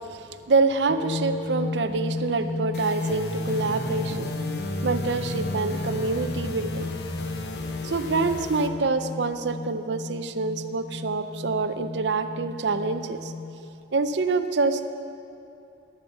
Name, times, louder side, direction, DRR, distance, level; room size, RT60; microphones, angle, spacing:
voice 1, 0.1-4.3 4.8-6.9 7.8-13.3 13.9-14.9, right 3 dB, 75° right, 10 dB, 0.6 m, -26 dB
sound 1, 0.9-13.7, left 3 dB, 30° left, 0.4 m, -34 dB
sound 2, 2.7-8.7, left 1 dB, 60° left, 0.8 m, -34 dB
12.5 x 7.0 x 7.3 m, 2.6 s
head